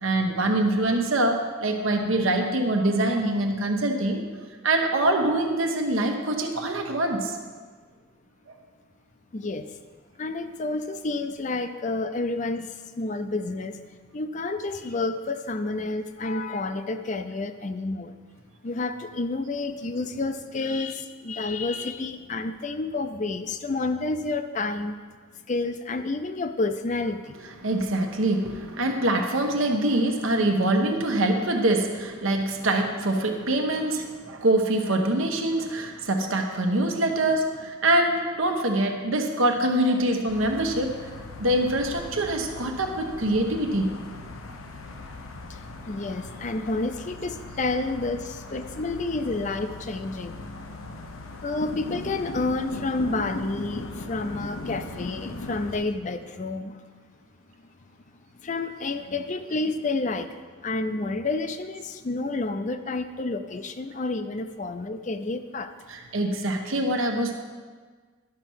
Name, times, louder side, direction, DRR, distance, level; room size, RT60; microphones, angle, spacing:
voice 1, 0.0-4.2 4.6-7.4 27.6-41.0 41.4-44.0 65.9-67.4, right 1 dB, 75° right, 3 dB, 1.2 m, -24 dB
voice 2, 9.3-9.7 10.2-12.7 13.0-13.8 14.1-18.1 18.6-24.9 25.5-27.3 45.9-50.4 51.4-56.7 58.4-60.3 60.6-65.7, left 3 dB, 35° left, 9 dB, 0.5 m, -29 dB
sound 1, 40.3-55.8, left 2 dB, 80° left, 0.8 m, -39 dB
11.5 x 5.6 x 6.3 m, 1.5 s
head